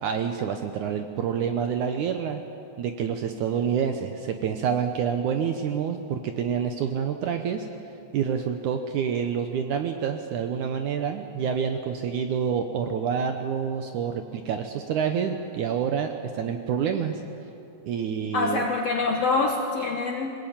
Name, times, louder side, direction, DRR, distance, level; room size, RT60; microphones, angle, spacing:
voice 1, 0.0-2.4 2.8-7.7 8.1-17.2 17.8-18.7, right 7 dB, 70° right, 6 dB, 1.9 m, -27 dB
voice 2, 18.3-20.3, left 3 dB, 70° left, 3 dB, 1.5 m, -25 dB
21.0 x 20.0 x 8.8 m, 2.7 s
omnidirectional pair, 4.4 m